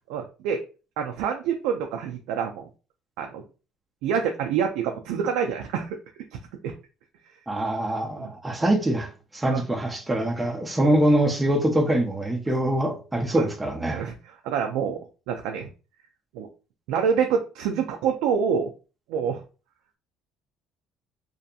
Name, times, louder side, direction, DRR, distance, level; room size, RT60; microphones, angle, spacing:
voice 1, 0.1-0.6 1.0-2.7 3.2-3.4 4.0-6.0 6.6-6.7 8.1-8.3 9.5-9.6 10.8-10.9 13.3-13.5 13.9-15.0 15.3-15.7 16.3-16.5 16.9-18.7 19.1-19.4, right 7 dB, 85° right, 0.3 m, -26 dB
voice 2, 7.5-14.1, right 1 dB, 10° right, 0.4 m, -24 dB
2.6 x 2.5 x 2.3 m
cardioid pair, 155°, 0 cm